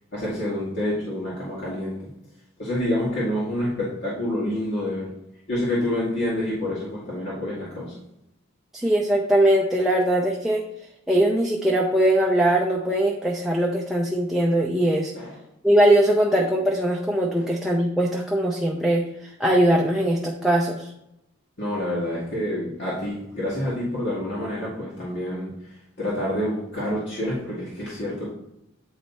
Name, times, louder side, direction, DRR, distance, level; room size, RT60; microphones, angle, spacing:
voice 1, 0.1-2.1 2.6-5.1 5.5-7.9 15.1-15.3 17.4-17.5 21.6-25.5 26.0-28.3, left 1 dB, 60° left, -8 dB, 2.0 m, -27 dB
voice 2, 8.7-10.6 11.1-15.1 15.6-20.9, right 1 dB, ahead, -2 dB, 0.6 m, -21 dB
8.7 x 3.3 x 4.1 m, 0.82 s
head